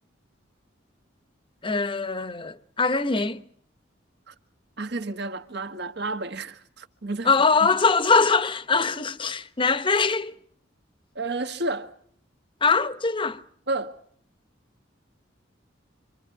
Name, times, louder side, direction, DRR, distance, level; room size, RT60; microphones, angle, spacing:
voice 1, 1.6-3.4 7.2-10.3 12.6-13.4, left 4 dB, 25° left, 0.9 m, -22 dB
voice 2, 4.8-7.3 7.6-7.7 11.1-11.9 13.7-14.0, right 2 dB, 60° right, 1.6 m, -31 dB
27.5 x 26.5 x 4.7 m
head